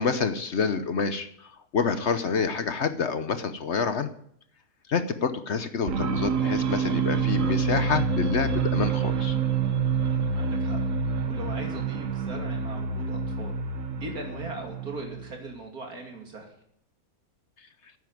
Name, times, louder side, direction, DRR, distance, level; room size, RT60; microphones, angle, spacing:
voice 1, 0.0-4.1 4.9-9.4, left 5 dB, 55° left, 10 dB, 1.0 m, -28 dB
sound 1, 5.9-15.5, right 5 dB, 60° right, 1.3 m, -27 dB
voice 2, 10.3-10.8 11.3-13.5 14.0-16.5, right 2 dB, 75° right, 2 dB, 3.3 m, -39 dB
9.8 x 9.5 x 9.5 m, 0.68 s
omnidirectional pair, 1.6 m